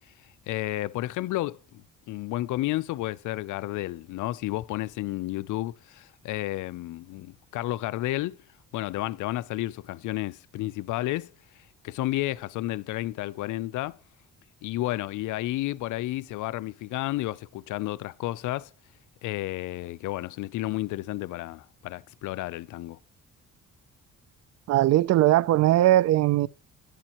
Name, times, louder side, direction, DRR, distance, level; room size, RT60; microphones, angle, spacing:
voice 1, 0.5-8.4 8.7-11.3 11.8-14.0 14.6-18.7 19.2-23.0, left 16 dB, 80° left, 0.5 m, -31 dB
voice 2, 24.7-26.5, right 14 dB, 60° right, 0.4 m, -20 dB
10.5 x 8.9 x 2.9 m
cardioid pair, 90°, 30 cm